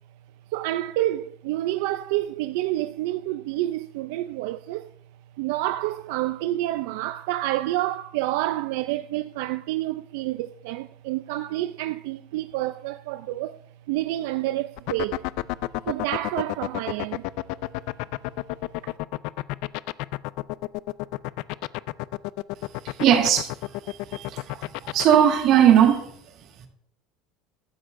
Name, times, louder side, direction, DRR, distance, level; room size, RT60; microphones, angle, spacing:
voice 1, 0.5-4.9 5.4-13.6 13.9-15.3 15.9-17.3 18.8-18.9, right 15 dB, 75° right, 0.3 m, -28 dB
sound 1, 14.8-25.2, left 20 dB, 60° left, 0.3 m, -30 dB
voice 2, 23.0-23.5 23.8-26.0, right 10 dB, 45° right, 1.7 m, -19 dB
14.5 x 12.5 x 2.5 m
cardioid pair, 165°, 0 cm